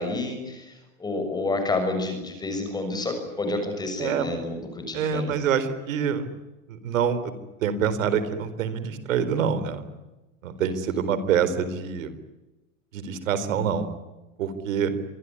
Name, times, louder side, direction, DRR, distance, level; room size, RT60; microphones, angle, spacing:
voice 1, 0.0-5.3 10.5-10.7, left 2 dB, 10° left, 6 dB, 6.6 m, -29 dB
voice 2, 4.0-4.3 4.9-6.3 6.7-7.3 7.6-9.8 10.4-12.1 12.9-13.9 14.4-14.9, right 7 dB, 85° right, 13 dB, 4.3 m, -26 dB
26.0 x 23.0 x 9.8 m, 1.0 s
supercardioid pair, 160°, 39 cm